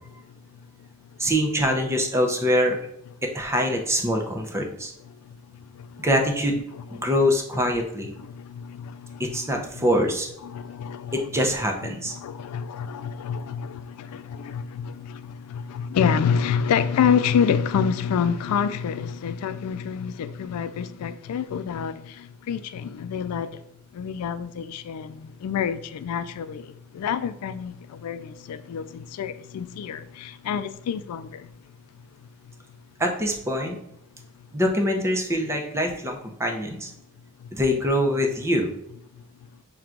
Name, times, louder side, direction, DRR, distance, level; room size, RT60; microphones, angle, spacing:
voice 1, 1.2-2.8 3.2-4.9 6.0-6.5 6.9-8.1 9.2-10.3 11.1-12.1 33.0-33.8 34.5-36.9 37.5-38.7, equal, 10° right, 0.6 m, -24 dB
voice 2, 5.1-6.1 6.7-7.1 8.2-9.8 10.4-11.3 11.8-23.6 23.9-31.5 37.4-37.5, left 7 dB, 85° left, 0.3 m, -28 dB
5.9 x 2.2 x 3.7 m
head